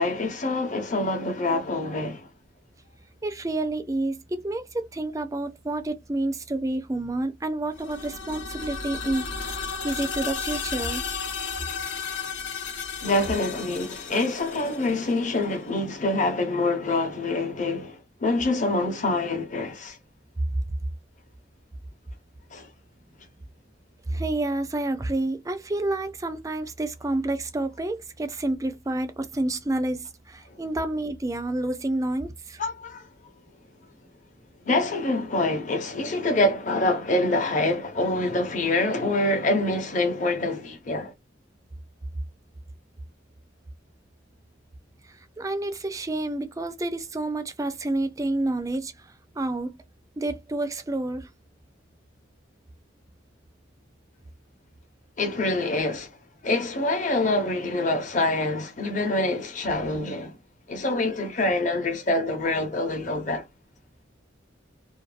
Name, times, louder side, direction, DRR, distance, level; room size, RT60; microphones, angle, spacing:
voice 1, 0.0-2.3 13.0-20.0 22.5-22.7 32.6-33.1 34.6-41.1 55.2-56.2 56.4-60.4 60.7-63.5, left 2 dB, 40° left, 0.8 m, -26 dB
voice 2, 3.2-11.1 24.1-32.6 45.1-49.8 50.2-51.3, right 2 dB, 15° right, 0.4 m, -29 dB
sound 1, 7.7-15.6, left 5 dB, 85° left, 0.8 m, -34 dB
2.6 x 2.3 x 2.4 m
head